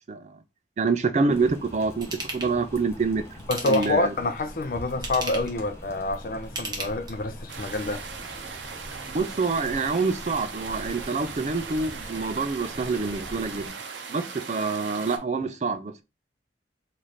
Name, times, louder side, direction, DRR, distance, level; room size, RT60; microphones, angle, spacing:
voice 1, 0.1-0.4 0.8-2.1 2.3-3.2 3.6-4.1 9.1-13.7 14.1-16.0, right 4 dB, 40° right, 0.4 m, -26 dB
sound 1, 1.3-13.7, equal, 15° left, 0.7 m, -43 dB
Ratchet pawl / Tools, 2.0-2.5 3.4-4.1 4.9-5.6 6.4-7.3 7.8-7.9, right 2 dB, 25° right, 0.9 m, -35 dB
voice 2, 3.5-8.0, left 2 dB, 50° left, 0.4 m, -27 dB
sound 2, 7.5-15.2, right 5 dB, 80° right, 0.6 m, -39 dB
3.2 x 2.5 x 4.1 m
head